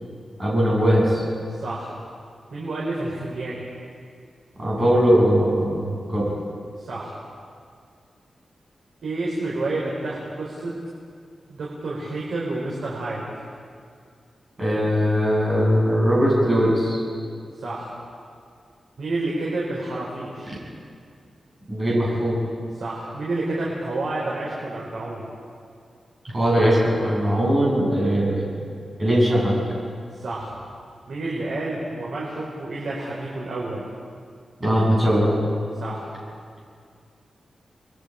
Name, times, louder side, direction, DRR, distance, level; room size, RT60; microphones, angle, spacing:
voice 1, 0.4-1.2 4.6-6.2 14.6-17.0 20.5-20.6 21.7-22.4 26.2-28.6 29.0-29.6 34.6-35.4, equal, 25° right, -6 dB, 7.9 m, -20 dB
voice 2, 1.5-1.9 2.5-3.6 6.8-7.1 9.0-10.7 11.5-13.2 17.6-17.9 19.0-20.5 22.7-25.3 30.1-30.5 31.1-33.9 35.7-36.0, right 2 dB, 90° right, -5 dB, 4.3 m, -29 dB
29.0 x 21.5 x 5.0 m, 2.3 s
wide cardioid pair, 165°, 0 cm